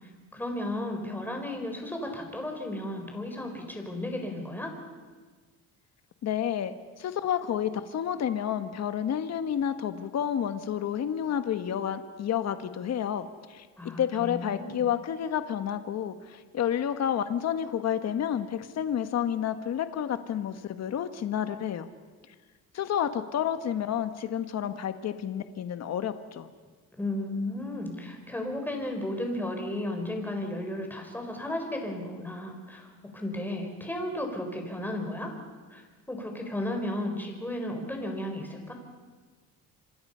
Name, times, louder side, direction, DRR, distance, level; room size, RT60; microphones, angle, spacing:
voice 1, 0.0-4.7 13.8-14.8 27.0-35.3 35.7-38.7, left 1 dB, 5° left, 2 dB, 4.6 m, -34 dB
voice 2, 6.2-13.7 14.0-21.9 22.7-26.5, left 9 dB, 50° left, 9 dB, 1.3 m, -30 dB
27.0 x 26.0 x 5.6 m, 1.4 s
cardioid pair, 125°, 35 cm